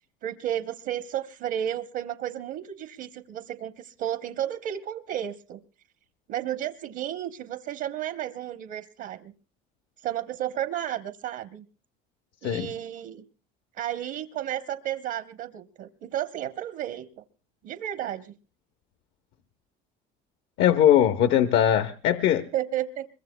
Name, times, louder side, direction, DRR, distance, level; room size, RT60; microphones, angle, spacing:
voice 1, 0.2-5.6 6.3-9.3 10.0-11.6 12.4-13.2 13.8-17.2 17.6-18.3 22.5-23.1, right 11 dB, 70° right, 8 dB, 0.9 m, -32 dB
voice 2, 20.6-22.5, left 10 dB, 70° left, 9 dB, 0.9 m, -20 dB
25.0 x 22.5 x 2.2 m, 0.35 s
cardioid pair, 110°, 20 cm